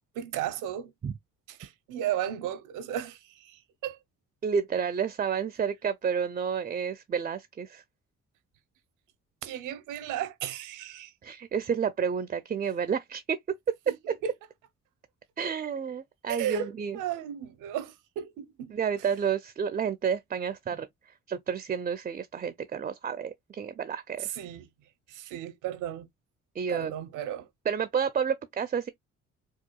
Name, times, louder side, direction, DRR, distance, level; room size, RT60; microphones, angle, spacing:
voice 1, 0.1-0.9 1.5-4.0 9.4-11.1 13.9-14.0 14.2-14.3 16.3-18.7 24.2-24.7 25.1-26.1 26.7-27.5, right 10 dB, 90° right, 0.7 m, -35 dB
voice 2, 4.4-7.8 11.2-13.4 14.1-14.2 15.4-17.0 18.7-24.4 26.5-26.9 27.7-28.9, right 7 dB, 30° right, 0.4 m, -30 dB
4.6 x 2.3 x 2.2 m
cardioid pair, 90°, 30 cm